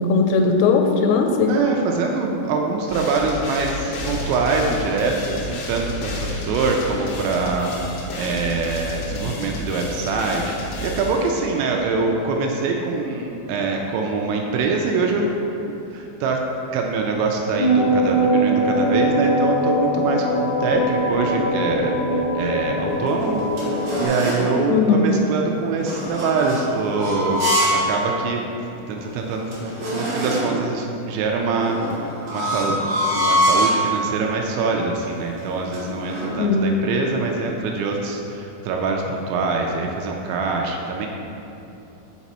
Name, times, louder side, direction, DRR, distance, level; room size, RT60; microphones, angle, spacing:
voice 1, 0.1-1.6 24.7-25.1 36.4-36.7, left 4 dB, 90° left, 5 dB, 3.1 m, -18 dB
voice 2, 1.5-15.3 15.6-16.4 16.7-28.5 28.9-29.5 29.9-32.8 33.1-41.1, right 4 dB, 85° right, 1 dB, 2.7 m, -24 dB
sound 1, 2.9-11.7, left 2 dB, 75° left, 2.9 m, -32 dB
sound 2, 17.6-24.0, right 1 dB, 60° left, 2.0 m, -21 dB
sound 3, 22.9-24.5 25.8-27.9 28.3-28.4 29.0-29.1 29.3-30.6 31.6-33.8 34.5-34.8 35.0-36.3, equal, 60° right, 2.6 m, -24 dB
6.0 x 5.9 x 4.1 m, 2.9 s
omnidirectional pair, 5.6 m